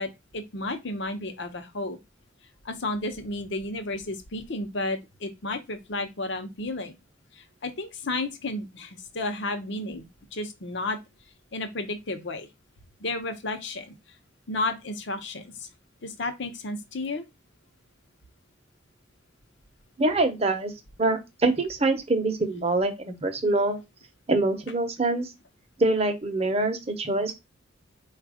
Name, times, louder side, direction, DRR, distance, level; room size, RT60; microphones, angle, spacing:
voice 1, 0.0-2.0 2.6-6.9 7.3-10.1 10.3-11.0 11.5-12.5 13.0-13.9 14.5-15.7 16.0-17.2, left 2 dB, 60° left, 0.8 m, -32 dB
voice 2, 20.0-20.7 21.0-23.8 24.3-25.3 25.8-27.3, right 2 dB, 30° right, 0.8 m, -25 dB
4.4 x 2.4 x 4.9 m
head